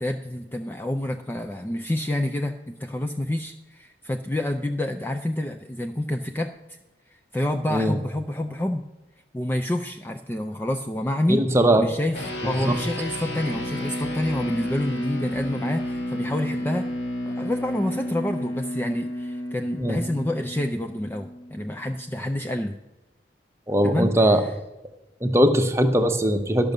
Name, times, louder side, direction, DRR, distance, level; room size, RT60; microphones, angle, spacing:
voice 1, 0.0-6.8 7.1-8.9 9.3-11.4 11.8-12.2 12.4-16.9 17.3-22.8 23.8-24.5, left 1 dB, 10° left, 4 dB, 0.4 m, -28 dB
voice 2, 11.3-11.9 12.4-12.8 19.8-20.0 23.7-24.4 25.2-26.7, right 1 dB, 15° right, 6 dB, 0.8 m, -20 dB
sound 1, 12.1-21.8, left 1 dB, 70° left, 1.7 m, -31 dB
12.0 x 6.1 x 6.6 m, 1.1 s
head